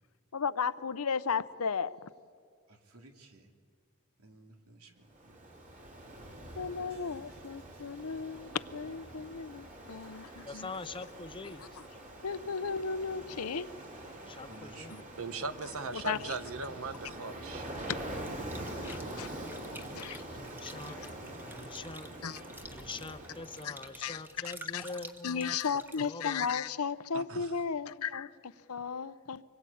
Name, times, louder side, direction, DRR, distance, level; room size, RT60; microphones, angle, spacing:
voice 1, 0.3-2.1 6.6-10.7 11.8-11.9 12.2-13.7 15.9-16.3 18.8-19.3 19.9-20.2 22.2-22.4 23.6-23.7 24.0-24.2 24.7-24.9 25.2-29.4, left 6 dB, 80° left, 15 dB, 0.7 m, -35 dB
voice 2, 2.7-3.5 4.2-5.4 6.4-6.6 6.9-8.3 9.8-10.3 14.3-15.1, right 2 dB, 90° right, 3 dB, 2.8 m, -57 dB
Ocean, 5.1-24.2, right 1 dB, 35° right, 4.3 m, -45 dB
voice 3, 10.4-11.6 14.3-14.9 20.5-21.0 21.6-22.1 22.7-25.6 26.0-26.5, left 3 dB, 25° left, 12 dB, 0.7 m, -43 dB
voice 4, 15.2-17.7 27.1-27.5, right 4 dB, 65° right, 11 dB, 1.2 m, -39 dB
sound 1, 18.2-26.1, right 1 dB, 10° right, 1.3 m, -51 dB
25.5 x 22.0 x 8.6 m, 2.1 s
head